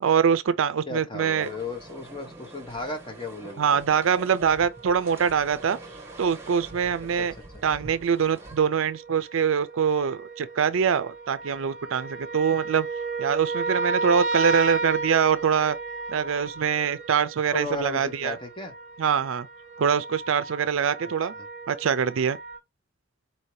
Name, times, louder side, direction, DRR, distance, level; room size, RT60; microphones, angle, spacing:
voice 1, 0.0-1.5 3.6-5.8 6.2-7.3 7.6-12.9 13.2-15.8 16.1-18.4 19.0-19.5 19.8-21.3 21.7-22.4, right 7 dB, 75° right, 0.4 m, -24 dB
voice 2, 0.9-3.8 7.2-7.3 17.5-18.7, left 2 dB, 25° left, 1.1 m, -35 dB
sound 1, 1.4-8.6, right 1 dB, 15° right, 1.4 m, -45 dB
sound 2, 4.4-7.2 7.6-22.6, right 3 dB, 35° right, 0.7 m, -34 dB
4.3 x 2.7 x 3.1 m
head